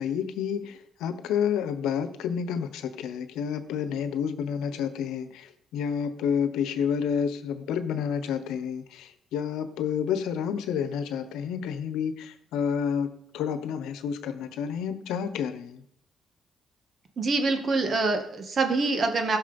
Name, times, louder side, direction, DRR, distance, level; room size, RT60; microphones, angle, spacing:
voice 1, 0.0-13.1 13.3-15.8, left 7 dB, 90° left, 11 dB, 1.0 m, -29 dB
voice 2, 17.2-19.4, right 3 dB, 45° right, 6 dB, 2.0 m, -25 dB
15.0 x 6.4 x 5.3 m, 0.73 s
cardioid pair, 90°, 0 cm